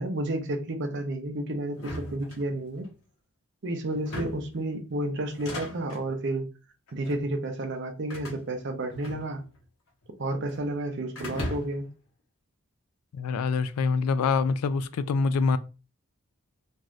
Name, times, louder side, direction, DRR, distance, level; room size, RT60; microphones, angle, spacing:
voice 1, 0.0-2.9 3.6-6.4 6.9-9.4 10.2-11.9, right 1 dB, 55° right, 0.6 m, -31 dB
sound 1, 1.7-2.9 3.9-4.6 5.2-6.1 6.9-7.3 8.1-9.6 9.9-10.7 11.2-11.9, left 1 dB, 70° left, 1.0 m, -38 dB
voice 2, 13.1-15.6, left 4 dB, 90° left, 0.3 m, -25 dB
3.1 x 2.6 x 2.4 m
head